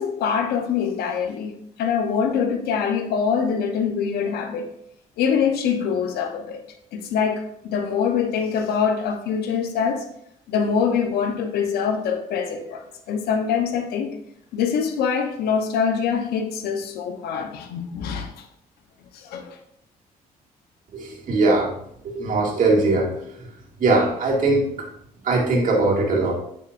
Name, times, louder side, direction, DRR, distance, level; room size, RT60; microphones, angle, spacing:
voice 1, 0.0-1.5 1.8-4.7 5.2-6.6 6.9-10.1 10.5-14.2 14.5-18.4 19.1-19.6, left 6 dB, 80° left, 6 dB, 1.0 m, -24 dB
voice 2, 20.9-21.7 22.0-23.5 23.8-24.9 25.2-26.3, right 2 dB, 55° right, -2 dB, 2.3 m, -21 dB
8.9 x 6.2 x 2.6 m, 0.72 s
cardioid pair, 80°, 16 cm